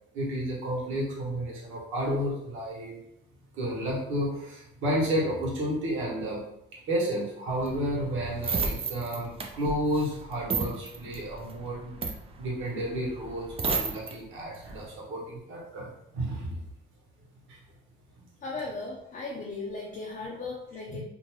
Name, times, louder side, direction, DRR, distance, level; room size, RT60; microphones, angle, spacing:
voice 1, 0.1-3.0 3.6-6.4 6.7-11.9 12.4-15.9 16.1-16.6 20.9-21.0, equal, 80° right, -4 dB, 1.0 m, -31 dB
sound 1, 7.5-14.1 14.5-14.9, right 4 dB, 30° right, 0.4 m, -33 dB
voice 2, 18.4-21.0, left 3 dB, 40° left, -2 dB, 0.5 m, -37 dB
2.6 x 2.2 x 3.1 m, 0.80 s
cardioid pair, 90°, 20 cm